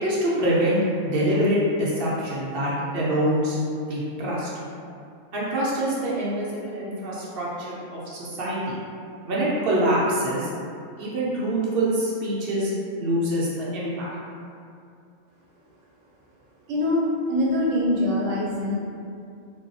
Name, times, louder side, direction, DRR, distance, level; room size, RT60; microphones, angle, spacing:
voice 1, 0.0-3.6 3.9-4.5 5.3-8.7 9.3-10.5 11.0-12.7 13.0-13.5 13.7-14.1, right 1 dB, 60° right, -7 dB, 0.7 m, -25 dB
voice 2, 16.7-18.8, left 1 dB, 85° right, -4 dB, 1.0 m, -23 dB
2.6 x 2.3 x 2.6 m, 2.4 s
omnidirectional pair, 1.3 m